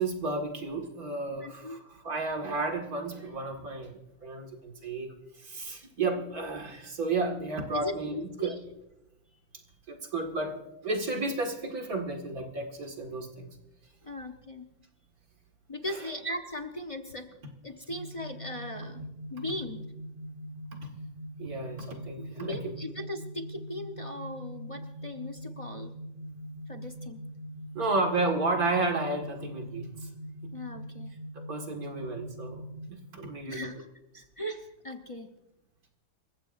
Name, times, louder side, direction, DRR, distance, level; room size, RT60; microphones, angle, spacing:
voice 1, 0.0-8.5 9.9-13.5 20.7-20.8 21.4-22.6 27.7-30.1 30.4-30.5 31.4-32.6 32.9-33.7, right 3 dB, 50° right, 3 dB, 2.3 m, -32 dB
voice 2, 1.4-1.8 7.7-8.6 14.0-14.7 15.7-17.3 17.6-19.9 22.3-26.0 26.7-27.2 30.5-31.1 33.5-33.9 34.1-35.3, left 1 dB, 25° left, 4 dB, 0.7 m, -38 dB
sound 1, 17.9-32.9, equal, 20° right, 2.4 m, -42 dB
27.5 x 15.0 x 2.6 m, 0.92 s
omnidirectional pair, 2.1 m